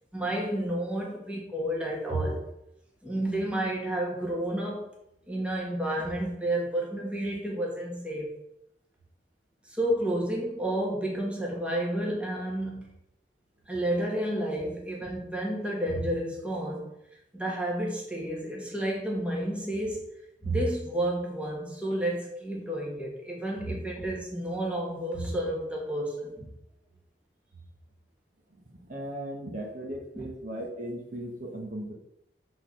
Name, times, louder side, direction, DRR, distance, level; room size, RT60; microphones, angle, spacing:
voice 1, 0.1-2.4 3.0-4.9 5.3-8.3 9.7-12.9 13.7-16.9 17.3-20.0 20.4-26.5 30.2-30.3, right 1 dB, 5° right, -2 dB, 1.7 m, -30 dB
voice 2, 28.8-31.9, right 1 dB, 45° right, 0 dB, 1.3 m, -37 dB
6.6 x 4.1 x 6.4 m, 0.80 s
head